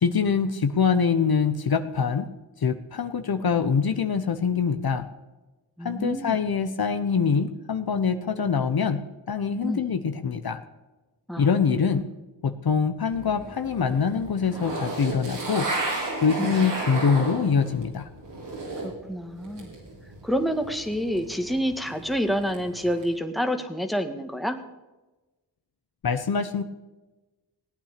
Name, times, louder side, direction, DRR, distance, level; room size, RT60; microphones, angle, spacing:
voice 1, 0.0-2.3 2.6-5.1 5.8-10.6 11.4-12.0 12.4-15.7 16.2-18.1 26.0-26.6, left 6 dB, 60° left, 9 dB, 1.1 m, -24 dB
voice 2, 5.8-6.4 9.6-9.8 11.3-11.5 16.4-16.6 18.8-19.7 20.2-24.6, equal, ahead, 6 dB, 1.9 m, -28 dB
sound 1, 13.1-19.0 19.3-23.0, right 2 dB, 85° right, 5.3 m, -34 dB
18.0 x 9.1 x 6.7 m, 1.1 s
cardioid pair, 55°, 42 cm